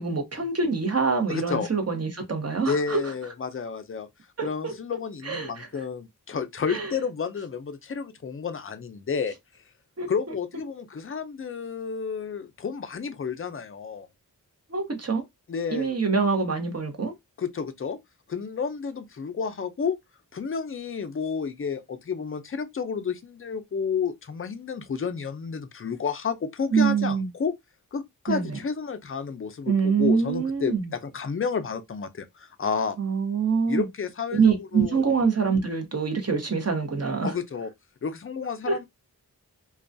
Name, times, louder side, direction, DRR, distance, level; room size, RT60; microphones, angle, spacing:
voice 1, 0.0-3.1 4.4-4.7 5.2-5.7 6.7-6.9 10.0-10.1 14.7-15.2 15.7-17.1 26.7-27.3 28.3-28.6 29.7-30.9 33.0-33.9 34.3-37.3 38.7-38.9, right 5 dB, 40° right, 0.8 m, -25 dB
voice 2, 1.3-1.7 2.7-4.1 4.4-9.3 10.1-14.1 15.5-16.0 17.4-18.0 18.3-20.0 20.3-27.6 27.9-33.0 33.7-35.0 37.2-37.7 38.0-38.8, left 6 dB, 35° left, 0.4 m, -31 dB
2.3 x 2.2 x 2.5 m
wide cardioid pair, 60°, 38 cm